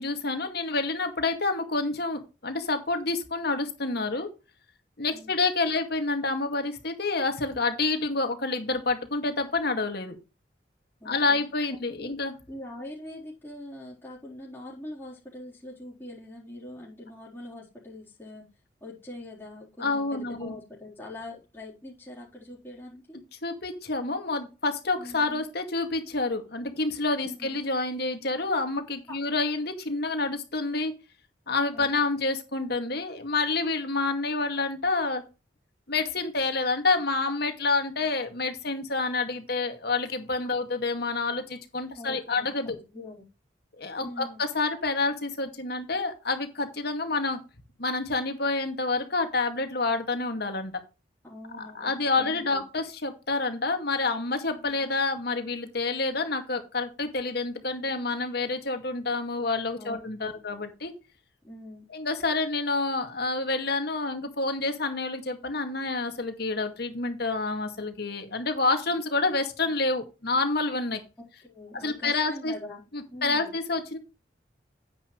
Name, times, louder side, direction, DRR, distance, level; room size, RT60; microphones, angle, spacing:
voice 1, 0.0-4.3 5.0-10.2 11.1-12.4 19.8-20.5 23.4-30.9 31.5-35.2 35.9-42.8 43.8-47.4 47.8-50.7 51.7-60.9 61.9-71.0 71.7-72.5 72.9-74.0, left 3 dB, 60° left, 6 dB, 2.2 m, -28 dB
voice 2, 5.1-5.4 11.0-11.4 12.0-12.1 12.5-18.5 18.8-23.2 25.0-25.4 27.2-27.6 31.7-31.9 41.9-43.2 44.0-44.6 51.2-51.9 52.2-52.6 54.7-54.9 59.7-60.4 61.4-61.9 71.2-72.8 73.1-73.5, left 1 dB, 10° left, -7 dB, 3.9 m, -43 dB
10.0 x 8.8 x 3.2 m, 0.30 s
head